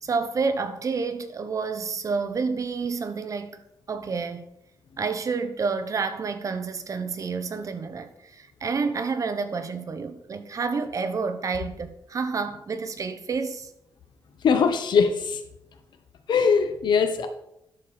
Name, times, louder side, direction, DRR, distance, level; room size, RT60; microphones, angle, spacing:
voice 1, 0.0-3.6 3.9-4.4 5.0-13.7, right 4 dB, 45° right, 0.9 m, -29 dB
voice 2, 14.4-15.4 16.3-17.3, left 6 dB, 80° left, 1.2 m, -21 dB
10.5 x 6.8 x 4.3 m
wide cardioid pair, 120°, 8 cm